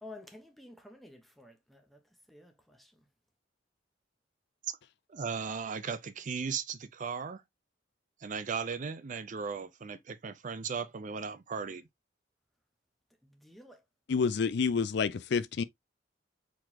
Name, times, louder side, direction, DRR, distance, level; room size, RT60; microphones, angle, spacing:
voice 1, 0.0-2.0 2.3-3.0 13.2-13.8, left 2 dB, ahead, 1.1 m, -52 dB
voice 2, 5.1-7.4 8.2-11.8, right 5 dB, 40° right, 0.5 m, -37 dB
voice 3, 14.1-15.6, left 5 dB, 60° left, 0.4 m, -28 dB
4.8 x 3.9 x 2.8 m
head